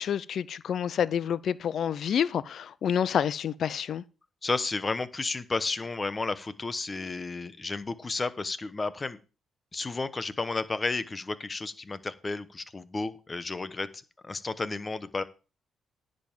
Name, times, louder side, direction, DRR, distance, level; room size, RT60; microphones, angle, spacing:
voice 1, 0.0-4.0, left 8 dB, 60° left, 0.5 m, -28 dB
voice 2, 4.4-9.2 9.7-15.2, left 3 dB, 25° left, 1.1 m, -32 dB
10.5 x 5.3 x 7.4 m
cardioid pair, 90°, 0 cm